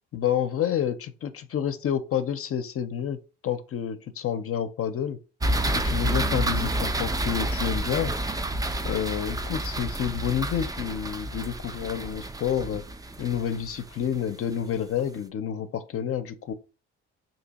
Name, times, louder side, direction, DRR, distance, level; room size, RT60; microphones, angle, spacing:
voice 1, 0.1-5.2 5.7-8.1 8.8-12.8 13.2-16.5, left 9 dB, 50° left, 0.5 m, -29 dB
sound 1, 5.4-14.5, right 1 dB, 15° right, 0.3 m, -29 dB
2.8 x 2.7 x 4.0 m
cardioid pair, 90°, 30 cm